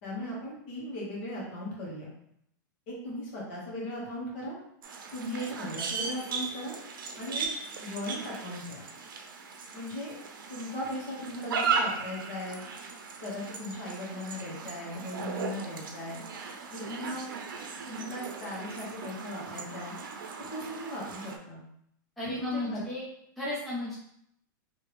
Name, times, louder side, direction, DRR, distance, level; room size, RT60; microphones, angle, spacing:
voice 1, 0.0-2.1 2.9-4.6 5.1-6.8 7.2-7.5 7.8-8.8 9.7-10.1 10.5-12.6 13.2-16.2 16.7-17.3 17.8-19.9 20.5-21.6 22.2-22.8, left 1 dB, 40° left, -5 dB, 1.3 m, -38 dB
sound 1, 4.8-21.4, right 5 dB, 85° right, 0.6 m, -37 dB
voice 2, 22.2-23.1 23.4-24.0, left 2 dB, ahead, -7 dB, 0.4 m, -34 dB
3.4 x 2.8 x 3.1 m, 0.73 s
supercardioid pair, 180°, 11 cm